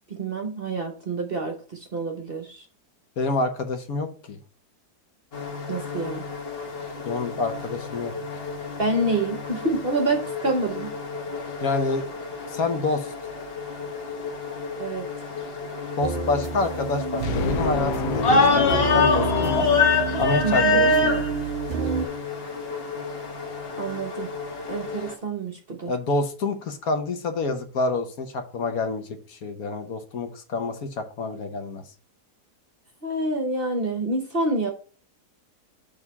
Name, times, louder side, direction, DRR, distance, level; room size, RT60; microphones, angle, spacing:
voice 1, 0.1-2.6 5.7-6.2 8.8-10.9 14.8-15.1 20.4-20.8 23.8-24.3 24.7-25.9 33.0-34.7, right 2 dB, 45° right, 3 dB, 0.9 m, -27 dB
voice 2, 3.2-4.4 7.0-8.1 11.6-12.1 12.5-13.1 16.0-19.7 20.2-21.2 25.9-31.8, left 3 dB, 65° left, 6 dB, 1.3 m, -27 dB
sound 1, 5.3-25.1, left 3 dB, 40° left, 1.2 m, -27 dB
sound 2, 16.0-22.1, right 6 dB, 65° right, 0.5 m, -29 dB
sound 3, 17.2-20.7, left 6 dB, 85° left, 1.3 m, -29 dB
6.4 x 3.6 x 5.3 m, 0.39 s
omnidirectional pair, 1.8 m